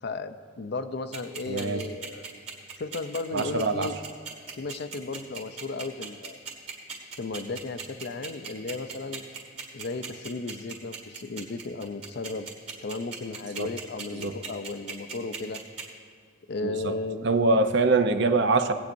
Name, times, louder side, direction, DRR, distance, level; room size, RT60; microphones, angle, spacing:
voice 1, 0.0-2.2 2.8-4.0 4.5-6.4 7.2-9.2 9.7-12.5 12.8-15.6 16.5-17.3, left 3 dB, 55° left, 10 dB, 0.5 m, -35 dB
sound 1, 1.1-15.8, right 6 dB, 35° right, 1.9 m, -37 dB
voice 2, 1.5-1.9 3.3-3.9 13.6-13.7 14.1-14.3 16.6-16.9 17.2-18.7, right 3 dB, 60° right, 8 dB, 0.6 m, -24 dB
19.0 x 8.6 x 2.6 m, 2.1 s
head